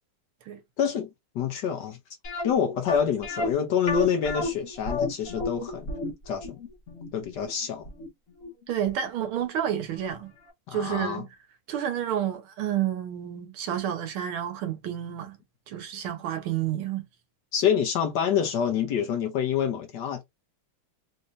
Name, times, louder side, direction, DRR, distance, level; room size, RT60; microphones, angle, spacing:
voice 1, 0.8-1.1 1.3-2.0 2.4-5.9 6.3-6.6 7.1-7.9 10.7-11.2 17.5-20.2, left 7 dB, 70° left, 1.1 m, -27 dB
sound 1, 2.2-9.1 9.4-9.5 10.0-10.2 10.5-10.6, left 3 dB, 45° left, 1.1 m, -32 dB
voice 2, 8.7-10.3 10.7-11.3 11.7-15.4 15.7-17.1, right 10 dB, 80° right, 1.7 m, -30 dB
4.0 x 2.7 x 2.5 m
omnidirectional pair, 2.3 m